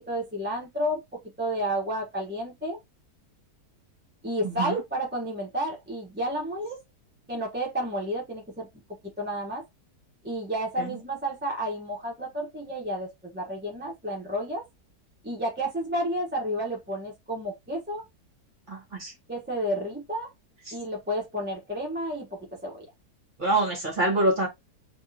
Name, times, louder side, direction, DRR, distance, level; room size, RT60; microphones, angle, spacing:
voice 1, 0.1-1.0 1.4-2.8 4.2-6.8 7.3-8.7 9.2-9.6 10.2-14.6 15.2-18.0 19.3-20.3 20.7-22.9, equal, 10° right, 0.8 m, -31 dB
voice 2, 18.7-19.1 20.7-20.8 23.4-24.5, right 2 dB, 30° right, 1.3 m, -25 dB
3.6 x 2.9 x 2.7 m
omnidirectional pair, 1.9 m